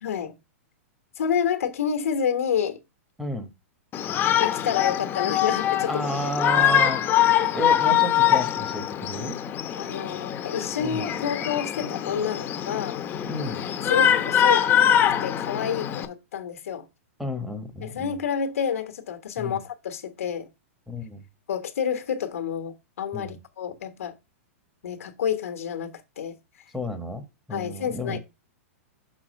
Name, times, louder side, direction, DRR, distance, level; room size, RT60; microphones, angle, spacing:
voice 1, 0.0-0.3 1.2-2.8 4.4-6.6 9.8-13.0 13.9-14.7 15.2-16.8 17.8-20.5 21.5-24.1 24.8-26.4 27.5-28.2, left 8 dB, 80° left, 1.3 m, -29 dB
voice 2, 3.2-3.5 5.9-7.1 7.5-9.4 10.8-11.0 13.2-13.6 17.2-18.1 19.4-19.6 20.9-21.2 23.1-23.4 26.7-28.2, left 1 dB, 5° right, 1.2 m, -31 dB
Shout, 3.9-16.1, left 10 dB, 25° left, 0.9 m, -23 dB
6.3 x 4.2 x 5.2 m
hypercardioid pair, 130°, 8 cm